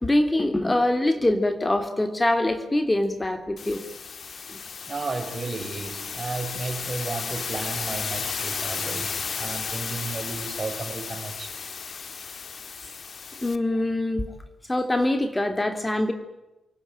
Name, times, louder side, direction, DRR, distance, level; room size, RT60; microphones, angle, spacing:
voice 1, 0.0-3.8 4.5-4.6 13.4-14.3 14.7-16.1, left 1 dB, 20° left, 7 dB, 3.1 m, -24 dB
sound 1, 3.6-13.6, left 5 dB, 50° left, 1.6 m, -34 dB
voice 2, 4.9-11.6, right 3 dB, 40° right, 7 dB, 4.8 m, -33 dB
28.5 x 19.0 x 8.9 m, 0.98 s
hypercardioid pair, 40°, 0 cm